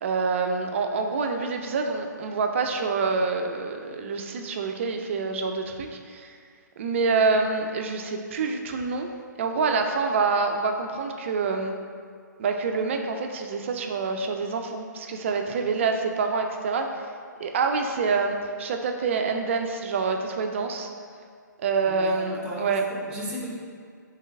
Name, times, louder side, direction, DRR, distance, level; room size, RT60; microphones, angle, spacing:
voice 1, 0.0-6.4 6.8-9.1 9.4-11.7 12.4-16.9 17.4-20.9 21.6-22.9, right 4 dB, 40° right, 4 dB, 0.4 m, -26 dB
voice 2, 21.9-23.5, equal, 10° right, -4 dB, 0.8 m, -36 dB
4.4 x 3.3 x 3.3 m, 2.1 s
figure-of-eight pair, 130°, 10 cm